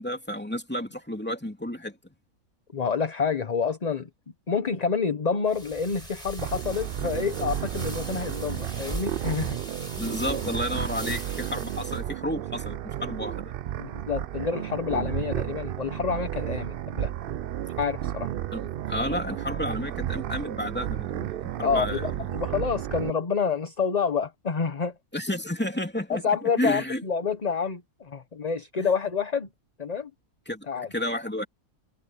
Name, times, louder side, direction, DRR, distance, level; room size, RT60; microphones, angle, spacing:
voice 1, 0.0-2.0 10.0-13.5 18.5-22.1 25.1-26.2 26.6-27.0 28.8-28.9 30.5-30.7 30.9-31.4, left 1 dB, 5° left, 2.8 m, -31 dB
voice 2, 2.7-4.1 4.5-9.6 13.8-17.1 17.8-18.3 21.6-24.9 26.1-29.5 29.8-30.1 30.7-30.9, left 5 dB, 30° left, 0.9 m, -28 dB
sound 1, 5.5-12.0, right 1 dB, 20° right, 5.2 m, -40 dB
sound 2, 6.4-23.1, right 11 dB, 80° right, 0.5 m, -32 dB
omnidirectional pair, 1.5 m